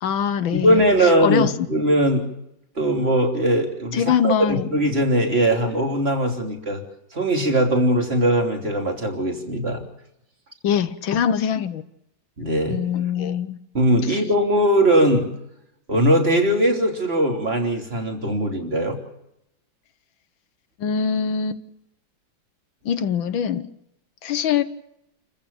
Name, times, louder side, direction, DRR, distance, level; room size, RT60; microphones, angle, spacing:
voice 1, 0.0-1.5 3.9-4.7 10.6-11.8 12.7-13.6 14.1-14.2 20.8-21.6 22.9-23.7 24.2-24.6, left 7 dB, 80° left, 11 dB, 1.7 m, -23 dB
voice 2, 0.5-2.3 2.8-6.8 7.1-9.8 12.4-12.8 13.7-15.3 15.9-19.0, right 1 dB, 30° right, 3 dB, 3.5 m, -20 dB
29.0 x 15.0 x 7.1 m, 0.85 s
omnidirectional pair, 2.1 m